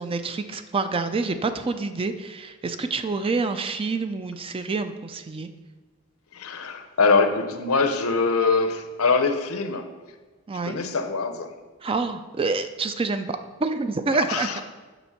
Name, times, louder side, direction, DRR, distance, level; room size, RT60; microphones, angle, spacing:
voice 1, 0.0-5.5 10.5-10.8 11.8-14.6, right 3 dB, 25° right, 9 dB, 0.4 m, -27 dB
voice 2, 6.3-9.9 10.6-11.5 14.3-14.6, left 4 dB, 75° left, 8 dB, 0.8 m, -23 dB
7.0 x 6.2 x 5.8 m, 1.3 s
head